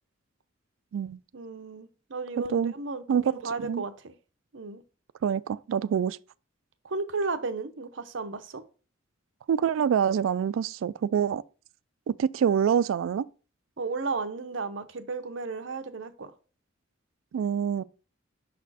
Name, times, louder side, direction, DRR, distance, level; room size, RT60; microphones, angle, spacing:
voice 1, 1.3-4.1 4.5-4.8 6.8-8.6 13.8-16.3, right 3 dB, 65° right, 0.7 m, -34 dB
voice 2, 3.1-3.8 5.2-6.2 9.5-11.4 12.1-13.3 17.3-17.8, right 8 dB, 80° right, 0.3 m, -26 dB
6.1 x 4.2 x 4.1 m
head